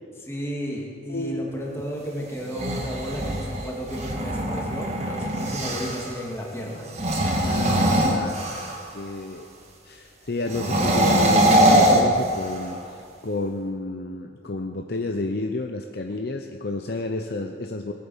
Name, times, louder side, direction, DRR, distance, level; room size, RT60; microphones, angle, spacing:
voice 1, 0.2-6.9, equal, 15° left, -3 dB, 2.5 m, -33 dB
voice 2, 1.1-1.4 7.4-8.7 8.9-9.5 9.8-17.9, left 2 dB, 55° left, 4 dB, 0.7 m, -31 dB
sound 1, 2.4-6.1 6.9-8.9 10.5-12.8, right 1 dB, 35° right, 1.9 m, -22 dB
19.5 x 8.6 x 7.3 m, 2.3 s
head